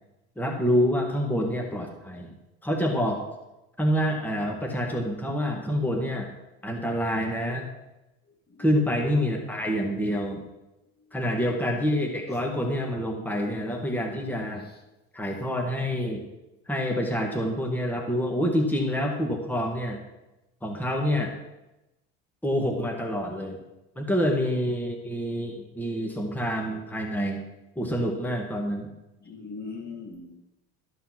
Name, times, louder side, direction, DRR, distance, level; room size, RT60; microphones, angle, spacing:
voice 1, 0.4-2.3 2.6-3.2 3.8-6.3 6.6-7.6 8.6-10.4 11.1-14.6 15.1-16.3 16.7-20.0 20.6-21.3 22.4-23.6 24.0-27.4 27.8-28.9, equal, 5° left, 1 dB, 1.7 m, -27 dB
voice 2, 8.5-9.1 12.3-12.5 14.6-14.8 29.2-30.4, left 4 dB, 30° left, 3 dB, 1.8 m, -42 dB
12.5 x 5.5 x 5.8 m, 0.96 s
supercardioid pair, 95°, 34 cm